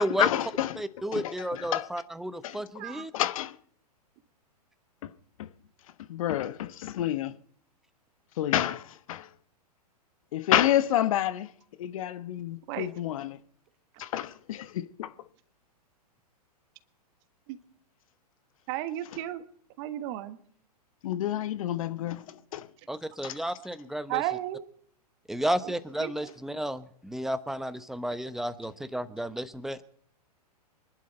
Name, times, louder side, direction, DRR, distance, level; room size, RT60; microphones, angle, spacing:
voice 1, 0.2-0.8 1.1-1.9 2.4-2.6 3.1-3.5 5.0-5.1 5.4-5.5 6.1-7.3 8.4-9.3 10.3-11.5 11.8-13.4 14.0-15.1 21.0-22.7 23.2-23.4, left 12 dB, 55° left, 1.1 m, -29 dB
voice 2, 0.8-3.1 22.9-24.2 25.3-29.8, right 1 dB, ahead, 1.0 m, -32 dB
voice 3, 18.7-19.4 19.8-20.4 24.1-24.6 26.0-26.3, right 14 dB, 40° right, 1.5 m, -33 dB
25.5 x 11.5 x 4.4 m
figure-of-eight pair, 110°, 21 cm